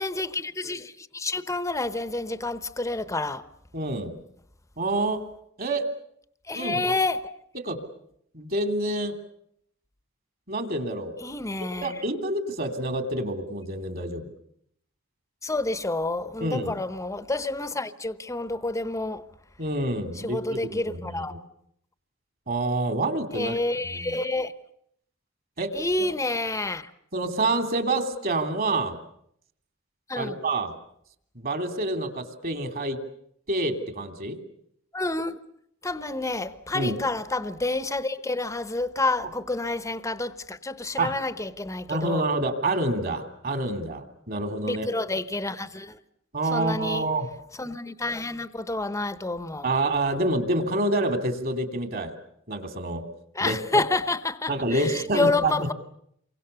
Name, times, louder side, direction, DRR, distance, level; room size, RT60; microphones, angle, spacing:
voice 1, 0.0-3.4 6.5-7.3 11.2-12.0 15.4-19.3 20.1-21.3 23.3-24.5 25.7-26.9 30.1-30.4 34.9-35.4 35.8-42.3 44.6-46.0 46.5-47.1 47.6-49.7 53.3-55.7, left 2 dB, 15° left, 1.0 m, -29 dB
voice 2, 3.7-4.1 4.8-5.2 5.6-5.8 6.5-6.8 7.5-7.8 8.3-9.1 10.5-11.2 11.6-14.3 16.4-16.7 19.6-21.2 22.5-23.5 23.8-24.1 25.6-25.7 26.0-26.1 27.1-29.0 30.2-30.7 31.3-33.0 33.5-34.4 36.7-36.9 41.0-41.1 41.9-44.9 46.3-47.3 49.6-52.1 52.5-53.0 53.4-53.6 54.5-55.7, right 2 dB, 45° right, 3.0 m, -27 dB
28.5 x 24.0 x 6.9 m
head